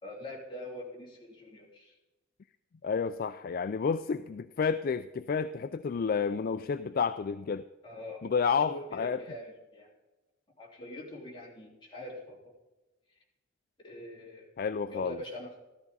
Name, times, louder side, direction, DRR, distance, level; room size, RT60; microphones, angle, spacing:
voice 1, 0.0-2.0 7.8-9.9 10.6-12.5 13.8-14.5 14.9-15.6, left 1 dB, 25° left, -4 dB, 3.0 m, -44 dB
voice 2, 2.8-7.6 8.2-9.2 14.6-15.2, left 5 dB, 50° left, 11 dB, 0.3 m, -30 dB
14.0 x 13.0 x 4.1 m, 1.1 s
head